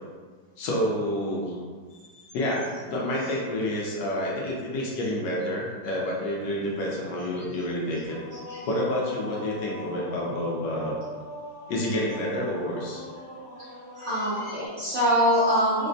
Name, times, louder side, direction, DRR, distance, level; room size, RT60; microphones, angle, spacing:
voice 1, 0.6-1.6 2.3-8.2 8.6-10.9 11.7-13.0, left 1 dB, 75° left, -3 dB, 1.2 m, -29 dB
sound 1, 8.0-14.7, equal, 15° right, 0.7 m, -42 dB
voice 2, 13.9-15.9, equal, 60° right, -11 dB, 0.7 m, -24 dB
4.1 x 2.1 x 2.6 m, 1.5 s
omnidirectional pair, 2.1 m